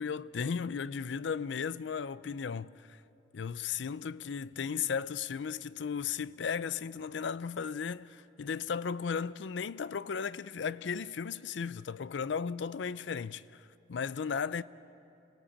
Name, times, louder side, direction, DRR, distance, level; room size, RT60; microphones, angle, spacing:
voice 1, 0.0-3.0 3.3-14.6, left 6 dB, 70° left, 0.4 m, -35 dB
26.0 x 17.5 x 8.5 m
head